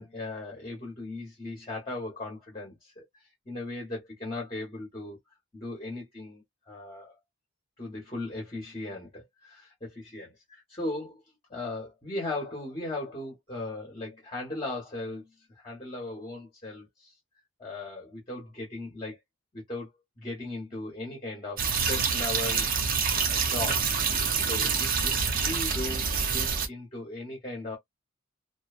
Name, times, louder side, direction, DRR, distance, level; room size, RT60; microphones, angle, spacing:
voice 1, 0.0-5.2 5.5-7.2 7.8-11.2 11.5-17.1 17.6-19.2 19.5-19.9 20.2-22.7 23.2-26.0 26.3-27.8, left 2 dB, 25° left, 1.0 m, -38 dB
sound 1, 21.6-26.7, right 5 dB, 40° right, 0.6 m, -27 dB
2.7 x 2.2 x 2.3 m
head